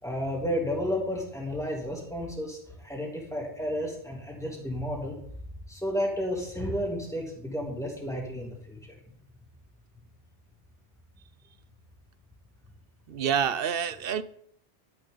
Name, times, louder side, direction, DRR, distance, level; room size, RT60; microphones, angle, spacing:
voice 1, 0.0-5.2 5.7-8.8, equal, 5° left, -2 dB, 3.0 m, -32 dB
voice 2, 13.1-14.2, right 8 dB, 60° right, 14 dB, 0.8 m, -27 dB
12.5 x 9.8 x 3.9 m, 0.66 s
omnidirectional pair, 1.1 m